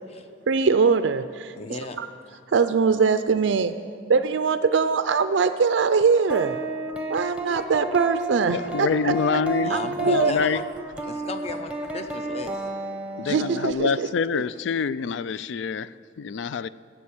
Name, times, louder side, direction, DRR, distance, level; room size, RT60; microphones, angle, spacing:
voice 1, 0.5-1.5 2.0-2.1 2.5-3.7 4.1-6.6 7.1-9.1 9.7-10.3 13.3-13.9, right 5 dB, 75° right, 10 dB, 0.4 m, -22 dB
voice 2, 1.6-2.0 9.6-10.6 11.1-12.6, left 3 dB, 35° left, 8 dB, 0.8 m, -35 dB
sound 1, 6.3-13.7, right 2 dB, 5° right, 0.8 m, -32 dB
voice 3, 8.5-10.7 13.2-16.7, left 6 dB, 75° left, 17 dB, 0.4 m, -26 dB
14.5 x 7.3 x 8.6 m, 2.4 s
head